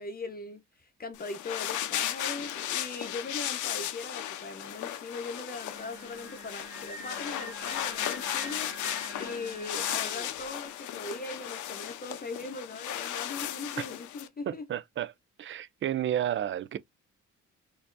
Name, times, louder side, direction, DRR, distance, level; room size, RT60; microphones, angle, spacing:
voice 1, 0.0-14.6, left 3 dB, 30° left, 0.8 m, -40 dB
sound 1, 1.1-14.3, left 11 dB, 75° left, 0.7 m, -35 dB
Singing, 5.7-10.5, right 1 dB, 10° right, 1.4 m, -45 dB
voice 2, 14.5-15.1 15.4-16.8, right 11 dB, 40° right, 0.4 m, -31 dB
4.3 x 2.7 x 2.5 m
cardioid pair, 90°, 30 cm